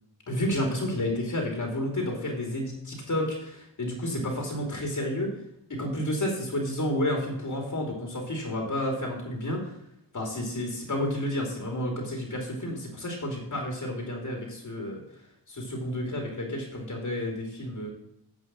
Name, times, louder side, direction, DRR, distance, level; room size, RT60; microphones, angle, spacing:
voice 1, 0.3-5.3 5.7-9.7 10.1-15.0 15.5-17.9, left 1 dB, 45° left, 1 dB, 2.7 m, -31 dB
9.0 x 5.6 x 7.4 m, 0.77 s
wide cardioid pair, 100°, 42 cm